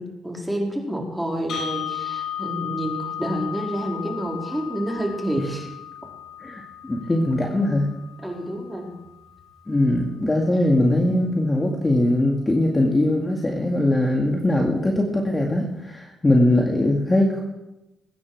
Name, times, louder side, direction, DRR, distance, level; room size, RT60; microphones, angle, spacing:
voice 1, 0.0-5.7 8.2-8.9, right 1 dB, 5° right, 0 dB, 4.0 m, -28 dB
sound 1, 1.5-9.5, left 9 dB, 65° left, 3.8 m, -35 dB
voice 2, 6.4-7.9 9.7-17.4, left 1 dB, 20° left, 0 dB, 2.2 m, -21 dB
21.0 x 9.5 x 4.8 m, 0.94 s
cardioid pair, 90°, 0 cm